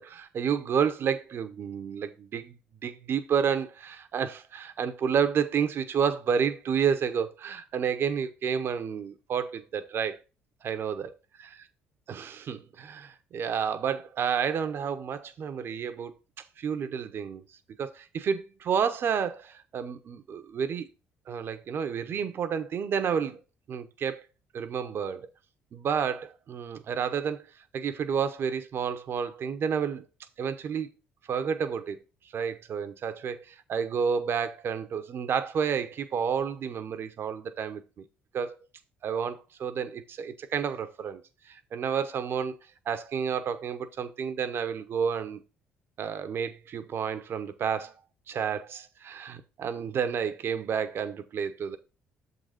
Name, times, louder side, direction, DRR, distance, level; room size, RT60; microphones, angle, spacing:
voice 1, 0.0-10.2 10.6-11.1 12.1-16.2 16.6-17.4 17.8-20.9 21.3-23.4 23.7-24.2 24.5-25.3 25.7-27.4 27.7-30.0 30.4-30.9 31.3-32.0 32.3-38.0 38.3-38.5 39.0-41.2 41.5-42.6 42.9-45.4 46.0-47.9 48.3-51.8, right 7 dB, 55° right, 1.0 m, -30 dB
7.1 x 4.1 x 5.0 m
supercardioid pair, 65°, 5 cm